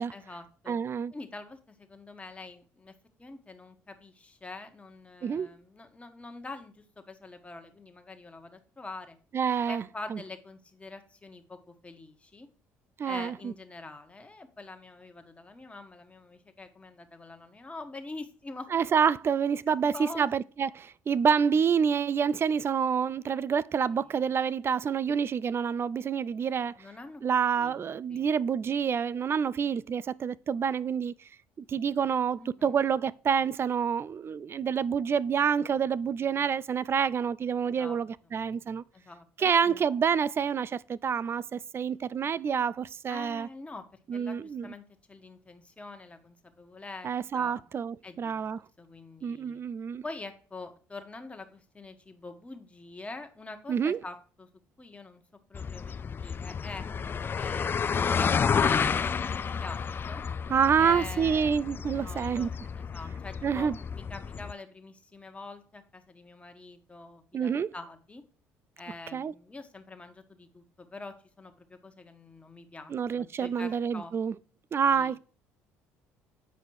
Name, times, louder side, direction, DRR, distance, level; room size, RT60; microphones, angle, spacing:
voice 1, 0.1-0.8 1.1-2.9 3.2-9.2 9.7-12.5 13.0-18.7 19.7-20.3 24.0-24.3 26.8-27.2 27.6-27.8 28.1-28.3 32.4-32.8 37.6-38.3 38.9-39.8 43.1-43.8 44.1-47.6 48.0-49.6 50.0-54.5 54.8-55.2 55.5-56.8 57.4-59.8 60.1-60.2 60.8-61.6 62.0-62.5 62.8-68.2 68.8-74.1 74.8-75.2, left 3 dB, 20° left, 1.4 m, -45 dB
voice 2, 0.7-1.1 5.2-5.5 9.3-9.8 10.1-10.2 13.0-13.5 18.7-26.7 27.2-31.1 31.7-38.8 39.4-43.5 44.1-44.7 47.0-48.6 49.2-50.0 53.7-54.0 60.5-62.5 63.4-63.8 67.3-67.7 69.1-69.3 72.9-74.3 74.7-75.2, right 7 dB, 40° right, 0.4 m, -27 dB
sound 1, 55.5-64.5, left 6 dB, 35° left, 0.4 m, -31 dB
7.5 x 5.0 x 4.7 m
supercardioid pair, 70°, 6 cm